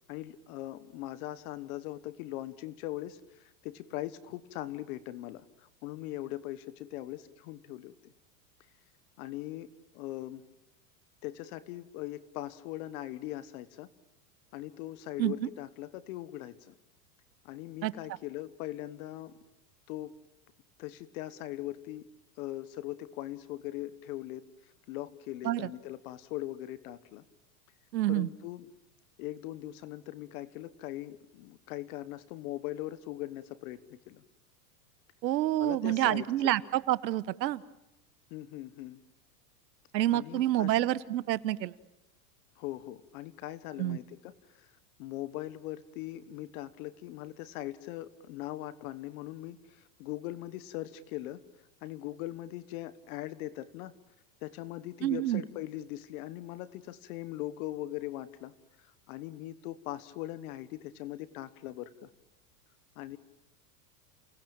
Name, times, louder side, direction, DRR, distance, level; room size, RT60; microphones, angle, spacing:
voice 1, 0.1-8.1 9.2-9.7 9.9-10.4 11.2-13.9 14.5-16.7 17.4-19.3 19.9-20.1 20.8-22.1 22.4-27.2 28.1-28.7 29.2-33.8 34.1-34.2 35.6-36.5 38.3-39.0 40.1-40.8 42.6-44.7 45.0-51.4 51.8-54.0 54.4-58.5 58.8-62.1 63.0-63.2, left 15 dB, 60° left, 15 dB, 1.4 m, -40 dB
voice 2, 27.9-28.3 35.2-37.6 39.9-41.7 43.8-44.0 55.0-55.4, right 14 dB, 85° right, 17 dB, 1.2 m, -28 dB
29.0 x 18.5 x 8.9 m, 0.88 s
supercardioid pair, 130°, 49 cm